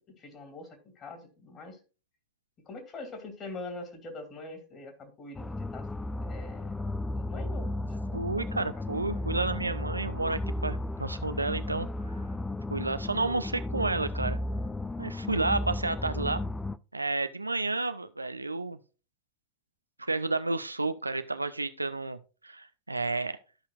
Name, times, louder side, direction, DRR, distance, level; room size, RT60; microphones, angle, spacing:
voice 1, 0.0-1.8 2.7-5.9 6.2-6.9 7.2-9.0, left 3 dB, 30° left, 2.6 m, -44 dB
sound 1, 5.3-16.8, left 1 dB, 10° left, 0.3 m, -34 dB
voice 2, 8.1-11.9 12.7-14.4 15.0-16.4 16.9-18.8 20.0-22.2 22.4-23.4, right 3 dB, 85° right, 0.5 m, -31 dB
13.0 x 5.7 x 2.4 m
figure-of-eight pair, 90°, 0 cm